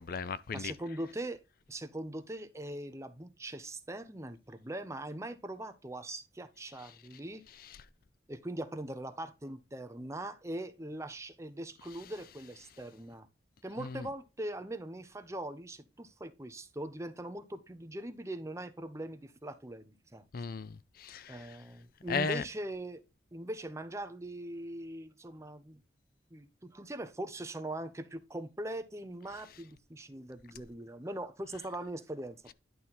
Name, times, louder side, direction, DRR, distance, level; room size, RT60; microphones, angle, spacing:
voice 1, 0.0-0.7 13.8-14.1 20.3-21.6 22.1-22.4, left 5 dB, 55° left, 0.5 m, -36 dB
voice 2, 0.5-1.4 1.7-7.4 8.3-13.3 13.6-20.2 21.3-23.0 23.3-25.8 26.3-32.5, right 1 dB, 15° right, 0.8 m, -41 dB
11.0 x 4.1 x 4.2 m
head